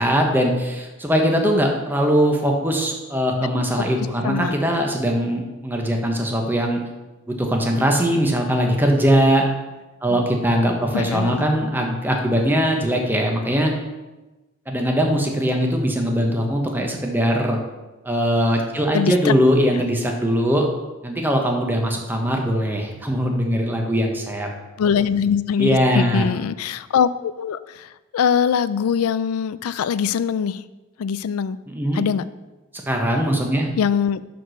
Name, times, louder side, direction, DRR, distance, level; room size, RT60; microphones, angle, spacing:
voice 1, 0.0-6.8 7.3-9.4 10.0-13.7 14.7-17.6 18.0-20.7 21.0-24.5 25.6-26.3 31.7-32.0 32.9-33.7, equal, 10° right, 2 dB, 0.9 m, -21 dB
voice 2, 4.2-4.6 10.1-10.2 10.9-11.4 18.9-19.3 19.6-19.8 24.8-30.6 31.0-31.6 31.9-32.2 33.8-34.2, left 7 dB, 90° left, 16 dB, 0.4 m, -22 dB
6.0 x 5.1 x 6.4 m, 1.1 s
head